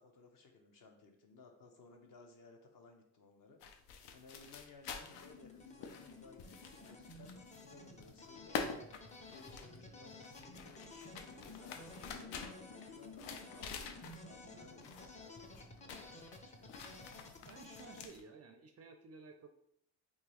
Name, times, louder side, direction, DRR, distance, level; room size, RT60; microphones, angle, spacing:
voice 1, 0.0-3.6 4.1-8.9 9.3-16.8, left 3 dB, 45° left, 3 dB, 0.8 m, -60 dB
sound 1, 3.6-7.7 8.0-14.5 14.8-15.2 15.4-18.2, left 6 dB, 75° left, 0.6 m, -47 dB
sound 2, 4.9-18.1, left 2 dB, 15° left, 0.5 m, -53 dB
voice 2, 17.5-19.5, right 4 dB, 35° right, 5 dB, 0.4 m, -55 dB
3.7 x 2.7 x 3.0 m, 0.73 s
supercardioid pair, 90°, 44 cm